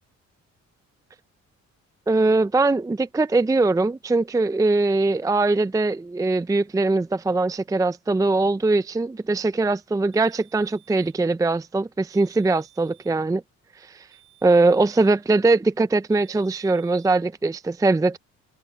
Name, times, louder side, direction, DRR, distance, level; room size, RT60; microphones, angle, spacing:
voice 1, 2.1-13.4 13.8-14.1 14.4-18.2, right 3 dB, 10° right, 0.5 m, -21 dB
sound 1, 10.1-11.2 12.1-13.2 14.1-15.2 16.1-17.2, right 17 dB, 90° right, 7.6 m, -56 dB
cardioid pair, 90°, 30 cm